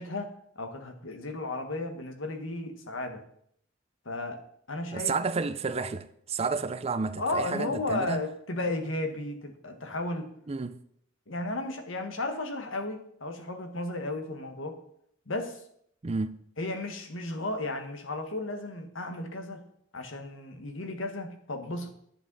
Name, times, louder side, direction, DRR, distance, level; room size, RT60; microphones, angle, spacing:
voice 1, 0.0-3.2 4.0-4.4 4.7-5.1 7.2-10.3 11.3-14.8 15.3-15.6 16.6-19.7 19.9-21.9, left 2 dB, 80° left, 1.5 m, -34 dB
voice 2, 4.9-8.2 10.5-10.8 16.0-16.4, right 4 dB, 30° right, 0.4 m, -31 dB
10.5 x 8.7 x 4.0 m
head